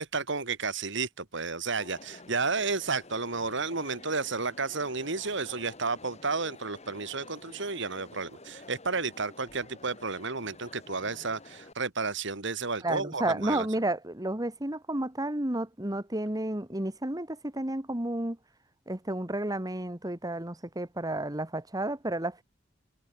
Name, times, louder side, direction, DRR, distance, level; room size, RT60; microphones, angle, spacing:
voice 1, 0.0-13.7, right 4 dB, 65° right, 2.7 m, -32 dB
Crowd, 1.8-11.7, left 2 dB, 35° left, 5.7 m, -50 dB
voice 2, 12.8-18.4 18.9-22.4, right 1 dB, 20° right, 2.1 m, -31 dB
head